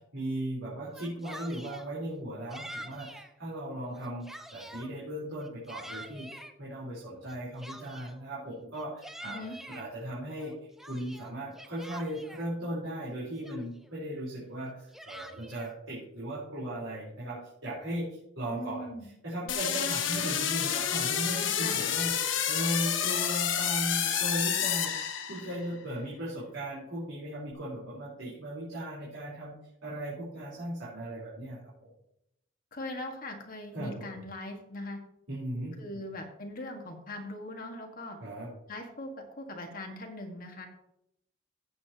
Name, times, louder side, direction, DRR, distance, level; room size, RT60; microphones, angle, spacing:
voice 1, 0.1-9.4 9.7-10.6 10.9-18.9 19.2-24.9 25.3-31.9 33.7-34.1 35.3-36.0 38.2-38.5, right 1 dB, 85° right, -8 dB, 4.0 m, -37 dB
Yell, 0.8-1.9 2.5-3.3 3.8-4.9 5.4-6.5 7.3-8.2 8.7-9.8 10.4-12.5 13.1-13.2 13.4-13.9 14.7-15.7, equal, ahead, 0.6 m, -46 dB
voice 2, 9.2-9.6 18.5-19.1 21.5-21.8 32.7-35.0 35.8-38.2 38.7-40.7, left 1 dB, 45° left, 3 dB, 1.6 m, -40 dB
sound 1, 19.5-25.7, left 9 dB, 75° left, 1.1 m, -29 dB
16.0 x 7.6 x 2.9 m, 0.80 s
head